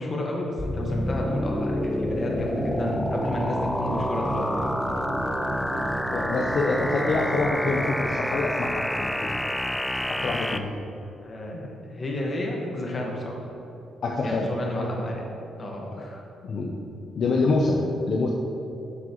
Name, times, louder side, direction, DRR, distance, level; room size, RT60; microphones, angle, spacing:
voice 1, 0.0-4.7 11.2-13.5 14.2-15.2 15.6-16.2, left 1 dB, 35° left, -1 dB, 1.5 m, -31 dB
sound 1, 0.6-10.6, left 1 dB, 10° left, 0.4 m, -28 dB
sound 2, 1.7-8.0, right 3 dB, 80° right, 1.1 m, -35 dB
voice 2, 6.1-9.4 10.1-10.7 14.0-14.5 16.4-16.7 17.1-17.8 18.1-18.3, left 3 dB, 55° left, 0 dB, 0.6 m, -26 dB
9.5 x 6.1 x 3.0 m, 3.0 s
cardioid pair, 100°, 0 cm